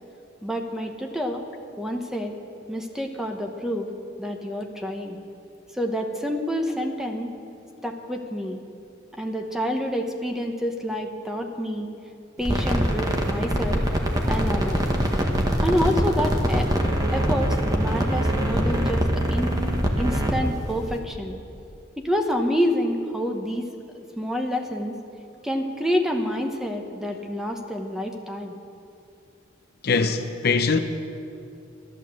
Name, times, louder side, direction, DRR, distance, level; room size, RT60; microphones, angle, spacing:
voice 1, 0.4-1.4 1.8-2.3 2.7-3.9 4.2-5.2 5.8-7.3 7.8-8.6 9.1-11.9 12.4-13.8 14.2-14.8 15.6-16.7 17.1-21.4 22.0-23.7 24.2-25.0 25.4-28.5, equal, ahead, 0.9 m, -28 dB
sound 1, 12.4-21.0, equal, 20° right, 1.2 m, -23 dB
voice 2, 29.8-30.8, left 4 dB, 50° left, 0.6 m, -22 dB
12.5 x 11.5 x 7.5 m
head